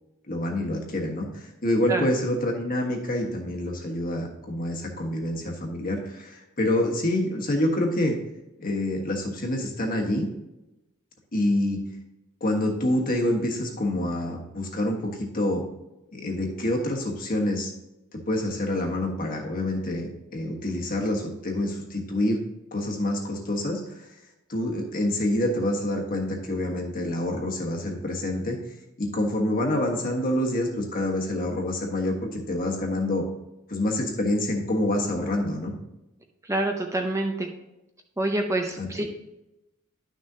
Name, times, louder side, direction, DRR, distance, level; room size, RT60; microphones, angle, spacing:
voice 1, 0.3-8.2 8.6-10.3 11.3-11.8 12.4-15.6 16.1-17.7 18.1-22.4 22.7-24.1 24.5-28.6 29.0-33.2 33.7-35.7 38.8-39.1, left 1 dB, 40° left, 1 dB, 1.5 m, -27 dB
voice 2, 36.4-37.5 38.2-39.0, right 1 dB, 15° right, 3 dB, 0.6 m, -26 dB
11.5 x 6.3 x 2.8 m, 0.95 s
head